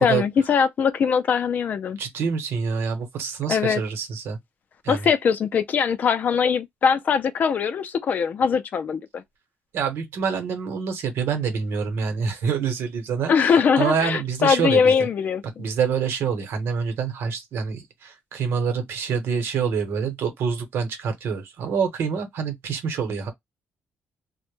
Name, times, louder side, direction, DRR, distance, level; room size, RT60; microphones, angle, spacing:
voice 1, 0.0-2.0 3.5-3.8 4.9-9.2 13.3-15.7, left 6 dB, 45° left, 0.3 m, -21 dB
voice 2, 2.0-4.4 4.8-5.1 9.7-14.9 15.6-23.3, right 6 dB, 75° right, 0.9 m, -26 dB
2.1 x 2.1 x 3.0 m
wide cardioid pair, 175°, 4 cm